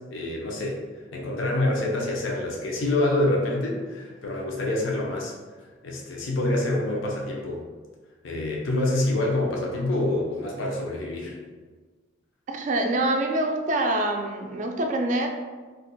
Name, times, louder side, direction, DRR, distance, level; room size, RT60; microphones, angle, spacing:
voice 1, 0.1-0.8 1.1-5.3 5.8-7.6 8.2-11.3, left 1 dB, 80° left, -1 dB, 0.6 m, -26 dB
voice 2, 12.5-15.3, right 1 dB, 40° right, 3 dB, 0.3 m, -25 dB
2.4 x 2.2 x 3.8 m, 1.4 s
head